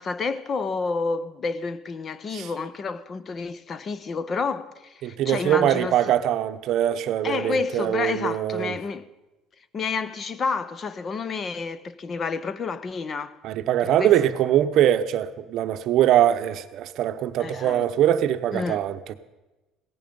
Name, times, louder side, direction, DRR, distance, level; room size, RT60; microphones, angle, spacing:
voice 1, 0.0-6.1 7.2-9.0 9.7-13.4 13.8-14.1 17.4-17.8 18.5-18.8, left 4 dB, 30° left, 0.7 m, -30 dB
voice 2, 5.0-8.7 13.4-19.1, right 11 dB, 50° right, 0.8 m, -22 dB
17.0 x 14.5 x 5.3 m
cardioid pair, 155°, 0 cm